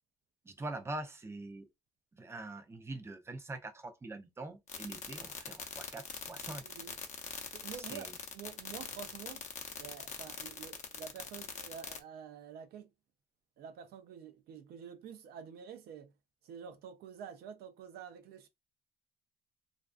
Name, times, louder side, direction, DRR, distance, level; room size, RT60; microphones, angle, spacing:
voice 1, 0.5-1.7 2.1-6.6 7.9-8.2, right 2 dB, 15° right, 0.5 m, -44 dB
sound 1, 4.7-12.0, left 7 dB, 45° left, 0.7 m, -42 dB
voice 2, 6.6-6.9 7.4-9.4 9.8-12.9 13.6-16.1 16.4-18.5, right 8 dB, 70° right, 0.5 m, -48 dB
2.5 x 2.3 x 2.4 m
cardioid pair, 110°, 17 cm